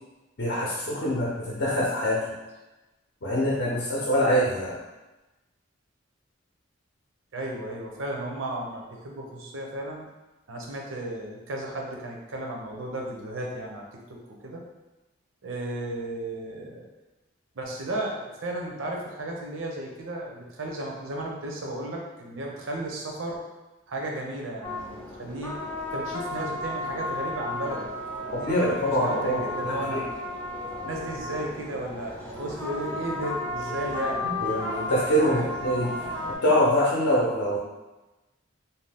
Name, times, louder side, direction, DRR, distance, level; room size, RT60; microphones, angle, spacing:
voice 1, 0.4-2.4 3.2-4.8 28.3-30.0 34.2-36.1 36.4-37.6, equal, 60° left, -5 dB, 0.6 m, -25 dB
voice 2, 7.3-10.0 10.5-14.6 15.4-16.9 17.6-23.4 23.9-25.6 25.9-27.9 28.2-30.0 30.8-34.3 35.3-35.5, right 1 dB, 80° right, -1 dB, 0.6 m, -34 dB
sound 1, 24.6-36.3, left 2 dB, 5° left, 0.4 m, -33 dB
2.7 x 2.3 x 3.4 m, 1.1 s
head